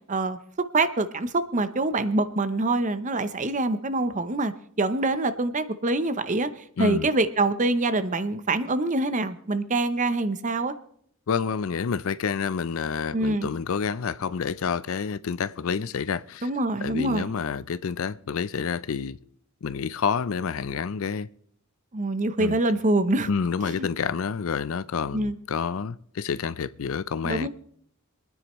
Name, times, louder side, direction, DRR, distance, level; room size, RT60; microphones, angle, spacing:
voice 1, 0.7-10.7 13.1-13.5 16.4-17.3 21.9-23.3 23.6-23.9 25.1-25.4 27.2-27.5, right 2 dB, 35° right, 0.7 m, -25 dB
voice 2, 6.8-7.1 11.3-16.5 16.8-19.2 19.6-21.3 22.4-22.6 23.3-27.5, left 6 dB, 65° left, 0.4 m, -28 dB
26.0 x 9.8 x 3.1 m
head